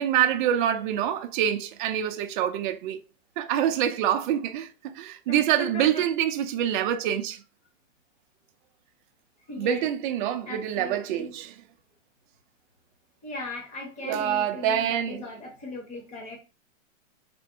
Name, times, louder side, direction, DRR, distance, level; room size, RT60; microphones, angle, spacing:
voice 1, 0.0-3.0 3.4-7.4 9.6-11.5 14.0-15.3, right 10 dB, 40° right, 0.5 m, -26 dB
voice 2, 5.3-6.0 9.5-9.8 10.5-11.3 13.2-16.4, left 2 dB, 20° left, 1.2 m, -38 dB
4.2 x 3.4 x 2.8 m
hypercardioid pair, 145°, 40 cm